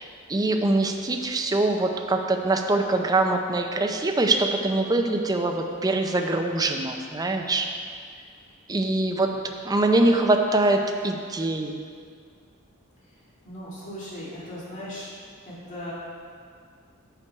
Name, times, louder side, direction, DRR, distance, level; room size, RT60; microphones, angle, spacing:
voice 1, 0.0-7.7 8.7-9.3 9.6-11.7, right 2 dB, 20° right, 3 dB, 0.5 m, -23 dB
voice 2, 13.4-15.1 15.5-15.9, left 1 dB, 35° left, -8 dB, 2.0 m, -37 dB
6.7 x 5.8 x 4.6 m, 2.1 s
head